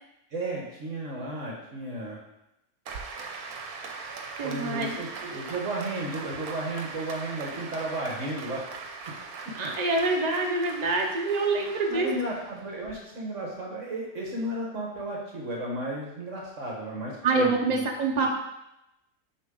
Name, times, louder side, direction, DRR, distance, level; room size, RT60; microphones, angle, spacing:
voice 1, 0.3-2.2 4.4-8.6 11.9-17.9, right 1 dB, 55° right, -2 dB, 1.7 m, -34 dB
Applause, 2.9-12.9, right 4 dB, 75° right, 1.3 m, -40 dB
voice 2, 4.4-4.9 9.5-12.1 17.2-18.3, right 3 dB, 30° right, 1 dB, 1.0 m, -26 dB
7.4 x 6.2 x 3.8 m, 0.88 s
omnidirectional pair, 1.6 m